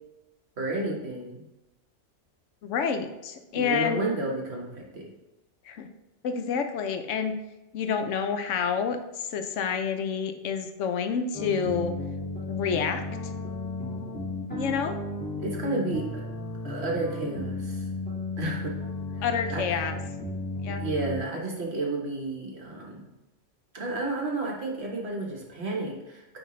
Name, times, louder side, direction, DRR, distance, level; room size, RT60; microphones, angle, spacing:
voice 1, 0.6-1.4 3.5-5.1 15.4-16.2 16.6-17.9 18.4-18.7 19.1-19.2 19.5-19.6 20.7-23.1 23.7-26.4, right 2 dB, 60° right, -1 dB, 1.5 m, -31 dB
voice 2, 2.6-4.0 5.6-5.9 6.2-7.3 7.7-11.9 12.5-13.3 14.5-15.0 19.2-20.0 20.6-20.8, left 6 dB, 80° left, 7 dB, 1.0 m, -28 dB
sound 1, 11.3-21.2, left 2 dB, 10° left, 1.7 m, -34 dB
9.4 x 3.4 x 3.1 m, 1.0 s
omnidirectional pair, 1.3 m